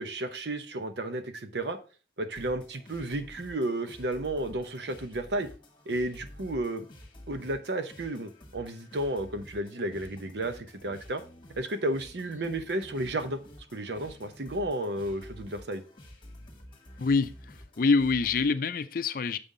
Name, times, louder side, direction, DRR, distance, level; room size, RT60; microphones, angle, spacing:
voice 1, 0.0-1.8 2.2-5.5 5.9-6.9 7.3-11.2 11.6-13.4 13.7-15.8, right 1 dB, 70° right, 0.8 m, -32 dB
sound 1, 2.3-18.5, left 1 dB, 25° left, 1.3 m, -50 dB
voice 2, 17.0-19.4, left 4 dB, 50° left, 0.4 m, -26 dB
6.8 x 5.5 x 3.8 m
head